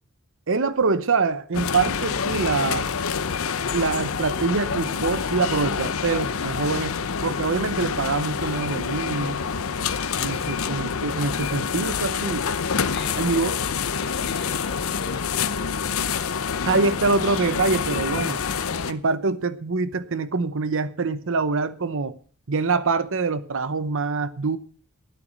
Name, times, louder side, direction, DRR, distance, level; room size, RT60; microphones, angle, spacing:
voice 1, 0.5-2.9 3.7-6.9 7.2-9.4 10.2-12.5 13.2-13.6 16.6-18.4 18.9-22.2 22.5-24.6, right 4 dB, 60° right, 0.9 m, -24 dB
sound 1, 1.5-18.9, left 6 dB, 65° left, 0.8 m, -27 dB
voice 2, 10.2-10.6 12.9-13.4 13.9-15.3, left 5 dB, 50° left, 2.4 m, -39 dB
12.0 x 9.4 x 6.5 m
head